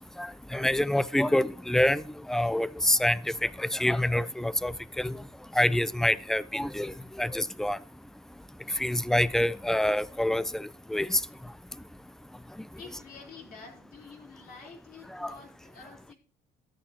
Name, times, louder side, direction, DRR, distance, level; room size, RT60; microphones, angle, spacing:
voice 1, 0.2-2.0 2.3-3.2 3.6-4.7 5.0-5.1 5.6-6.9 7.2-7.8 8.8-10.6 10.9-11.2 15.2-15.3, left 1 dB, 5° left, 0.4 m, -26 dB
voice 2, 12.8-16.1, left 4 dB, 60° left, 3.7 m, -48 dB
12.5 x 8.5 x 2.9 m
cardioid pair, 110°, 17 cm